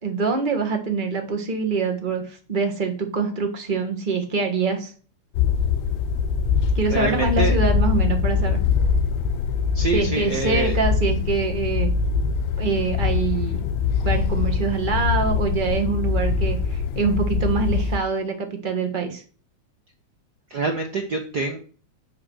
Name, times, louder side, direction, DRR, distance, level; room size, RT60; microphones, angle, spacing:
voice 1, 0.0-4.9 6.7-8.6 9.9-11.9 12.6-13.6 14.0-19.2, right 4 dB, 55° right, 4 dB, 0.5 m, -25 dB
sound 1, 5.4-18.0, left 6 dB, 75° left, 1.8 m, -23 dB
voice 2, 6.9-7.6 9.7-10.8 20.5-21.6, right 4 dB, 75° right, 2 dB, 0.9 m, -25 dB
8.1 x 4.8 x 6.2 m, 0.40 s
omnidirectional pair, 3.4 m